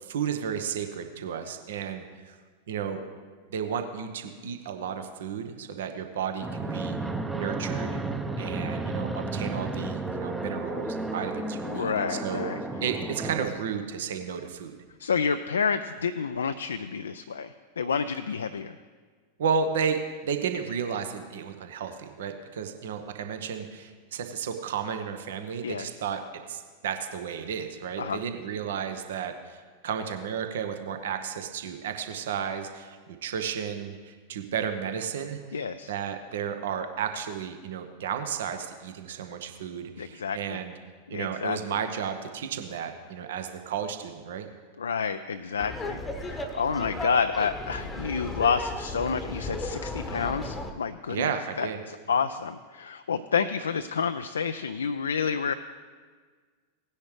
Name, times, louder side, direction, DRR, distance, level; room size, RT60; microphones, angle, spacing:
voice 1, 0.0-2.4 2.7-3.0 3.5-7.0 7.3-8.0 8.4-12.4 12.8-14.7 19.4-40.7 41.1-44.5 51.1-51.8, right 7 dB, 60° right, 7 dB, 1.0 m, -33 dB
Fixed-wing aircraft airplane, 6.4-13.5, right 2 dB, 5° right, 0.7 m, -32 dB
voice 2, 11.7-12.6 15.0-18.8 25.6-25.9 28.0-28.2 35.5-35.9 40.0-40.6 41.1-41.6 44.8-51.3 51.6-55.5, left 6 dB, 70° left, 9 dB, 0.4 m, -29 dB
Laughter, 45.6-50.7, left 1 dB, 10° left, 1.0 m, -35 dB
17.5 x 9.9 x 3.2 m, 1.5 s
figure-of-eight pair, 90°, 0 cm